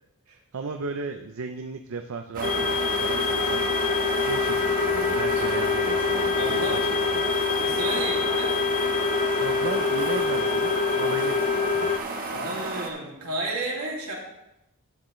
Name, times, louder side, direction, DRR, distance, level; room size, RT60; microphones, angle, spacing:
voice 1, 0.5-3.7 4.2-6.7 7.1-7.2 9.4-11.9, right 4 dB, 65° right, 6 dB, 0.5 m, -35 dB
sound 1, 2.3-12.9, right 3 dB, 40° right, 1.3 m, -32 dB
sound 2, 2.4-12.0, left 5 dB, 35° left, 0.4 m, -25 dB
voice 2, 6.4-6.8 7.6-8.5 12.3-14.1, right 2 dB, 80° right, -3 dB, 2.6 m, -32 dB
11.5 x 9.1 x 3.2 m, 0.90 s
head